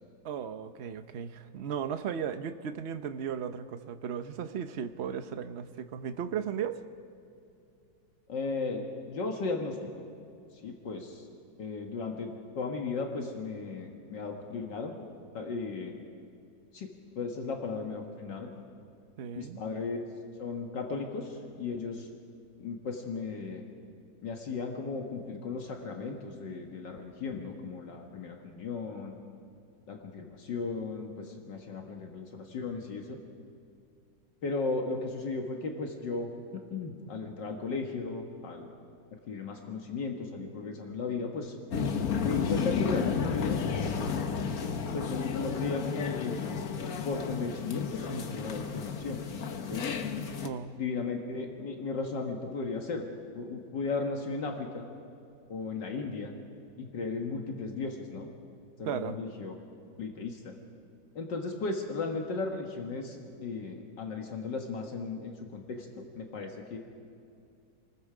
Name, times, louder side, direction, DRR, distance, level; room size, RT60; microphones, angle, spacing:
voice 1, 0.2-6.8 19.2-19.6 50.4-50.7 58.8-59.2, right 8 dB, 50° right, 9 dB, 0.8 m, -36 dB
voice 2, 8.3-9.8 10.5-11.3 11.6-14.9 15.3-15.9 16.7-16.9 17.2-18.5 19.4-20.0 20.4-22.1 22.6-23.6 24.2-29.1 29.9-33.2 34.4-36.3 36.7-38.7 39.3-41.6 42.2-43.6 44.9-46.6 47.0-49.9 50.8-53.0 53.3-54.9 55.5-56.3 56.8-58.3 58.8-59.6 60.0-60.5 61.2-66.8, left 4 dB, 75° left, 2 dB, 2.2 m, -36 dB
sound 1, 41.7-50.5, left 6 dB, 55° left, 1.4 m, -32 dB
28.0 x 20.0 x 5.0 m, 2.5 s
omnidirectional pair, 2.0 m